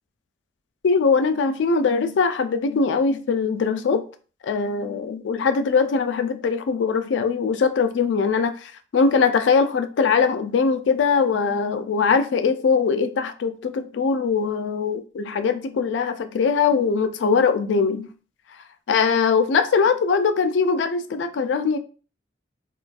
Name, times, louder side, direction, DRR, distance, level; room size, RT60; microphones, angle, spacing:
voice 1, 0.8-4.0 4.4-18.1 18.9-21.8, left 5 dB, 90° left, 0.4 m, -21 dB
3.8 x 2.3 x 2.4 m
head